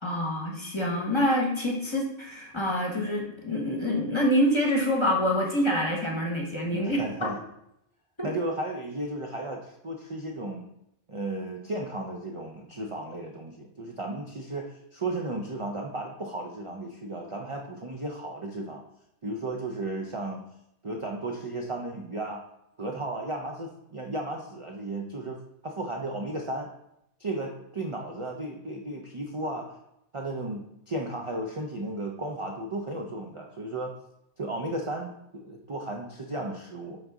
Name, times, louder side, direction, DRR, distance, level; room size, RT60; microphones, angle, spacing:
voice 1, 0.0-7.3 8.2-8.3, equal, 25° left, -1 dB, 1.1 m, -26 dB
voice 2, 6.7-7.4 8.2-10.7 11.1-18.8 19.2-20.4 20.8-22.4 22.8-25.4 25.6-26.7 27.2-29.8 30.1-33.9 34.4-37.0, right 2 dB, 35° right, 1 dB, 0.5 m, -34 dB
7.8 x 4.0 x 3.6 m, 0.79 s
omnidirectional pair, 1.3 m